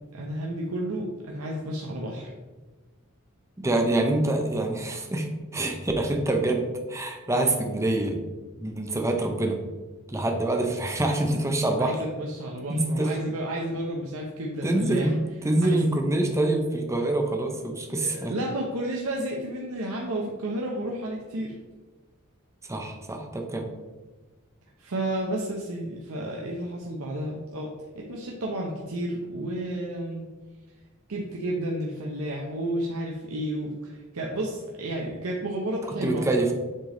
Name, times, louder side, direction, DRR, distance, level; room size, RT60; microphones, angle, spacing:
voice 1, 0.1-2.3 11.8-15.1 15.6-15.9 18.0-21.6 24.8-30.3 31.1-36.5, right 1 dB, 85° right, -2 dB, 0.8 m, -32 dB
voice 2, 3.6-8.2 8.6-9.6 10.1-12.0 12.7-13.1 14.6-15.2 15.4-18.3 22.7-23.7 36.0-36.5, right 2 dB, 15° right, 3 dB, 0.7 m, -25 dB
7.6 x 3.4 x 3.8 m, 1.2 s
head